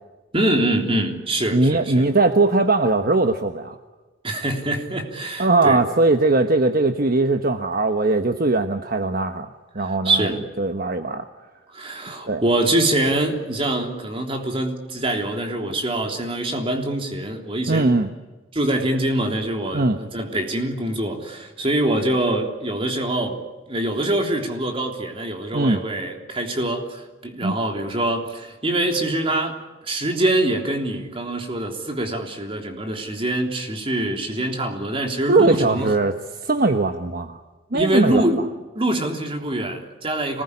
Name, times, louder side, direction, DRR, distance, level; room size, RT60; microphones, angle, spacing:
voice 1, 0.3-2.1 4.2-5.8 9.8-10.4 11.7-18.0 18.5-23.4 23.7-35.9 37.7-38.4 38.8-40.4, right 1 dB, 30° right, 3 dB, 3.5 m, -24 dB
voice 2, 1.5-3.8 5.4-9.5 9.7-11.2 12.3-12.4 17.7-18.1 19.7-20.0 25.5-25.8 27.4-27.6 35.3-36.1 36.4-37.4 37.7-38.3, right 2 dB, 50° right, 7 dB, 1.2 m, -20 dB
26.5 x 20.0 x 9.9 m, 1.2 s
head